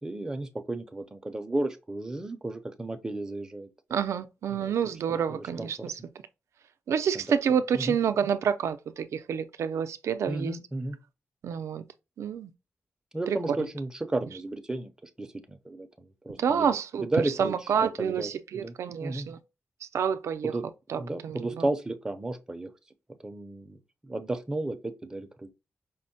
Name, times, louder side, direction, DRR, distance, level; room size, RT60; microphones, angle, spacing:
voice 1, 0.0-3.7 4.5-4.7 5.1-5.9 7.1-7.2 7.7-8.0 10.3-11.0 13.1-16.7 17.0-17.5 17.8-18.7 19.0-19.3 20.4-20.6 21.0-22.7 23.2-25.5, right 2 dB, 15° right, 0.5 m, -33 dB
voice 2, 3.9-6.0 6.9-10.6 11.4-11.8 12.2-12.5 13.3-13.6 16.4-19.4 19.8-20.5 20.9-21.6, right 7 dB, 75° right, 0.4 m, -28 dB
5.1 x 2.1 x 2.7 m
wide cardioid pair, 170°, 5 cm